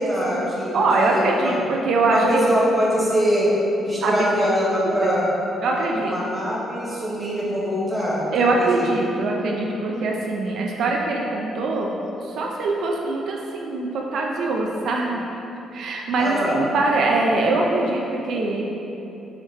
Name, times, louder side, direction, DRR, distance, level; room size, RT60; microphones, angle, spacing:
voice 1, 0.0-1.6 2.0-3.5 3.8-5.3 5.7-8.2 8.5-8.9 16.2-16.6, equal, 5° left, -7 dB, 1.0 m, -23 dB
voice 2, 0.7-2.5 4.0-4.2 4.8-5.2 5.6-6.2 8.3-12.0 12.2-15.2 15.7-18.6, right 2 dB, 70° right, -1 dB, 0.3 m, -23 dB
4.7 x 2.1 x 3.2 m, 3.0 s
cardioid pair, 90°, 0 cm